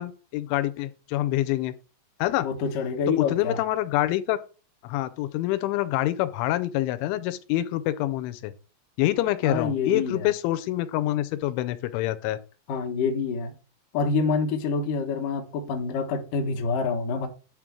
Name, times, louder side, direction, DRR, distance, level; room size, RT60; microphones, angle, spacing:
voice 1, 0.0-1.7 2.2-2.5 3.2-4.4 4.8-8.5 9.0-12.4, left 15 dB, 90° left, 3.0 m, -26 dB
voice 2, 2.4-3.6 9.4-10.3 12.7-13.5 13.9-17.3, left 4 dB, 70° left, 2.1 m, -27 dB
9.5 x 3.7 x 6.1 m
omnidirectional pair, 5.4 m